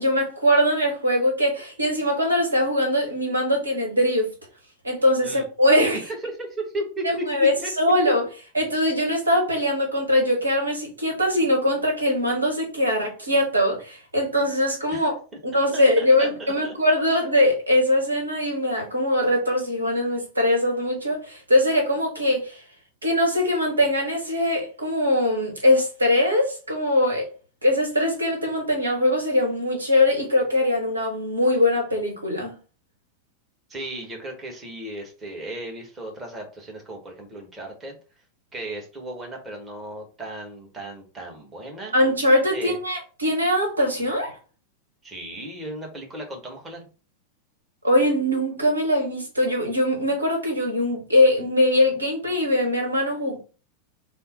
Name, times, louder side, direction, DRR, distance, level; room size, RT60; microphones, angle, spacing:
voice 1, 0.0-4.3 4.8-6.0 7.0-8.2 8.5-15.2 15.4-22.6 23.0-27.3 27.6-32.5 41.9-44.4 47.8-53.4, left 1 dB, 75° right, 1.1 m, -22 dB
voice 2, 5.9-7.2 7.6-7.7 14.9-15.1 15.7-16.7 33.7-37.9 38.5-41.9 42.5-42.8 45.0-46.9, right 1 dB, 20° right, 1.2 m, -35 dB
3.8 x 2.0 x 4.1 m
figure-of-eight pair, 90°, 0 cm